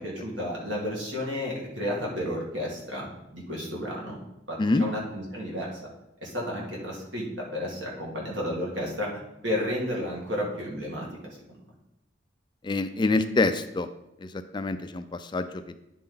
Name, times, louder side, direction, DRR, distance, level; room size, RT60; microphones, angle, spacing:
voice 1, 0.0-4.2 4.5-5.8 6.2-9.1 9.4-11.1 11.5-11.6, left 1 dB, 85° right, -3 dB, 1.9 m, -32 dB
voice 2, 12.6-13.9 14.2-15.8, left 2 dB, 25° left, 9 dB, 0.4 m, -26 dB
10.0 x 4.3 x 3.9 m, 0.85 s
head